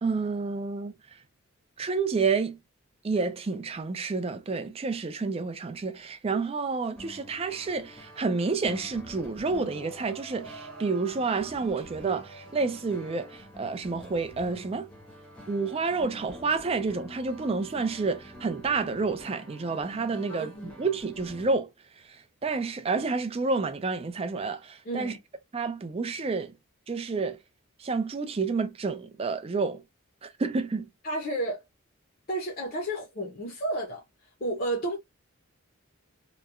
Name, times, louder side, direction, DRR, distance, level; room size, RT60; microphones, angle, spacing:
voice 1, 0.0-0.9 1.8-2.6 3.0-14.9 15.5-21.7 22.4-25.1 25.5-26.5 26.9-27.4 27.8-29.8 30.2-30.9, right 4 dB, 25° right, 0.3 m, -29 dB
sound 1, 6.9-21.5, equal, 5° left, 0.7 m, -47 dB
sound 2, 9.4-13.2 14.4-14.9, right 3 dB, 80° right, 0.8 m, -48 dB
voice 2, 20.3-20.8 24.8-25.2 31.0-31.6 32.3-34.0 34.4-35.0, right 1 dB, 40° left, 0.6 m, -31 dB
2.9 x 2.2 x 2.2 m
head